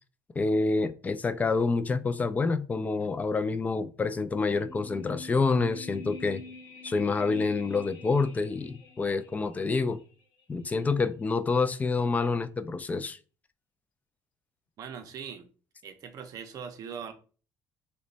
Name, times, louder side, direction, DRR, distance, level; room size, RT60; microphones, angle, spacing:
voice 1, 0.4-6.4 6.8-10.0 10.5-13.2, left 4 dB, 20° left, 12 dB, 0.3 m, -27 dB
sound 1, 4.5-9.7 10.0-10.1, left 3 dB, 80° left, 0.8 m, -45 dB
voice 2, 14.8-15.5 15.8-17.1, right 7 dB, 55° right, 7 dB, 0.6 m, -40 dB
3.0 x 2.2 x 3.9 m, 0.37 s
cardioid pair, 115°, 8 cm